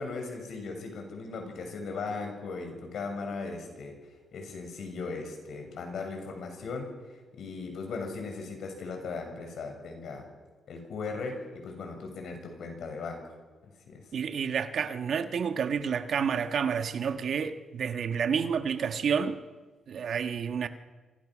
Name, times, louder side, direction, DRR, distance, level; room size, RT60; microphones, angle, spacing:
voice 1, 0.0-3.9 4.3-6.9 7.3-10.3 10.7-13.3 13.9-14.0, left 4 dB, 65° left, 6.6 m, -37 dB
voice 2, 14.1-19.4 19.9-20.7, right 7 dB, 55° right, 1.4 m, -29 dB
27.5 x 26.0 x 6.3 m
wide cardioid pair, 165°, 0 cm